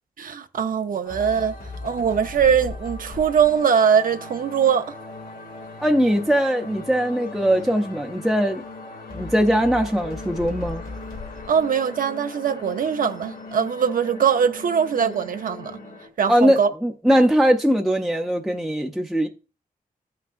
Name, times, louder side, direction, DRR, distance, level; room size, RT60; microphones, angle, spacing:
voice 1, 0.2-1.5 1.8-4.9 11.5-15.7 16.2-16.7, right 7 dB, 65° right, 0.6 m, -21 dB
sound 1, 1.0-16.1, left 3 dB, 80° left, 2.4 m, -38 dB
voice 2, 5.8-8.6 9.1-10.8 16.3-19.3, equal, ahead, 0.5 m, -20 dB
14.0 x 5.9 x 2.5 m
wide cardioid pair, 155°, 15 cm